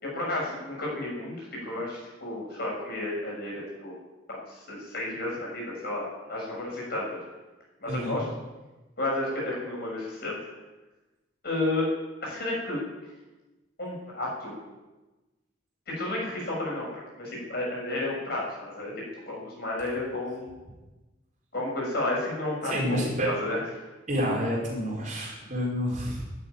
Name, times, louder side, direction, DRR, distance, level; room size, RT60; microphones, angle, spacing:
voice 1, 0.0-4.0 4.3-7.2 7.8-8.2 9.0-10.4 11.4-11.9 12.2-12.8 13.8-14.6 15.9-20.5 21.5-23.6, left 2 dB, 55° left, -3 dB, 7.1 m, -32 dB
voice 2, 7.9-8.2 22.6-23.3 24.1-26.3, equal, 40° right, -3 dB, 5.1 m, -29 dB
12.5 x 9.6 x 9.8 m, 1.1 s
head